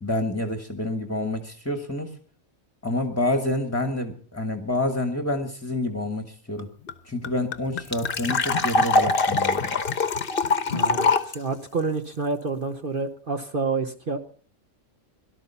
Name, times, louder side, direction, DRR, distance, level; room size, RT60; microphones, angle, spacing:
voice 1, 0.0-2.2 2.8-6.7 7.0-9.7, left 1 dB, 10° left, 7 dB, 1.3 m, -28 dB
sound 1, 6.6-6.7 6.9-7.0 7.2-11.4, left 3 dB, 45° left, 1.1 m, -23 dB
voice 2, 10.7-14.2, right 4 dB, 40° right, 6 dB, 1.1 m, -28 dB
18.0 x 12.0 x 5.6 m, 0.44 s
omnidirectional pair, 1.5 m